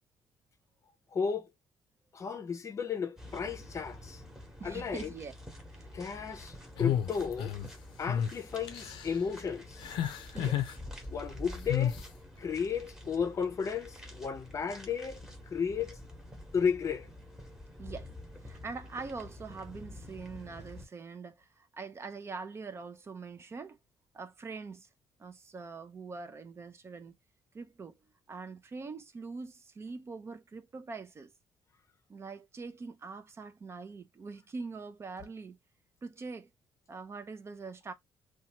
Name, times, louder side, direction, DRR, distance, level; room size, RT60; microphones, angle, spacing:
voice 1, 1.1-1.5 2.1-4.2 4.6-5.1 5.9-7.6 8.0-9.9 11.1-12.0 12.4-16.0 16.5-17.1, left 6 dB, 40° left, 0.6 m, -34 dB
sound 1, 3.2-20.8, left 1 dB, 5° right, 1.0 m, -48 dB
voice 2, 4.6-5.3 5.7-5.9 10.3-10.6 17.8-18.1 18.4-23.8 24.1-24.9 25.2-27.1 27.5-28.0 28.3-31.3 32.1-35.6 36.0-36.5 36.9-37.9, right 4 dB, 35° right, 0.5 m, -43 dB
sound 2, 6.8-7.7 8.1-8.3 8.7-9.2 9.8-10.7 11.7-12.0, left 10 dB, 85° left, 0.5 m, -31 dB
2.7 x 2.3 x 2.8 m
cardioid pair, 95°, 8 cm